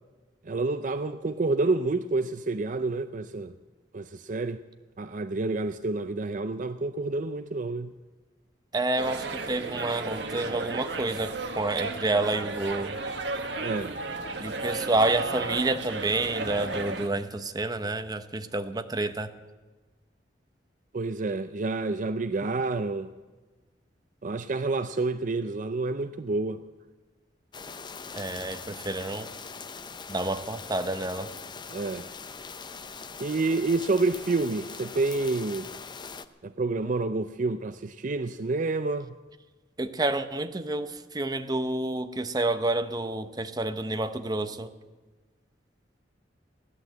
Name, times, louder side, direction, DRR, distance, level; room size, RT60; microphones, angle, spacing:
voice 1, 0.4-3.5 3.9-4.6 5.0-7.9 13.6-13.9 20.9-23.1 24.2-26.6 31.7-32.1 33.2-35.7 36.4-39.1, right 3 dB, 45° right, 0.5 m, -28 dB
voice 2, 8.7-13.0 14.4-19.3 28.1-29.3 30.1-31.3 39.8-44.7, right 2 dB, 20° right, 0.8 m, -29 dB
sound 1, 9.0-17.1, right 3 dB, 70° right, 1.4 m, -34 dB
sound 2, 27.5-36.3, left 5 dB, 25° left, 0.6 m, -42 dB
16.5 x 11.5 x 7.7 m
head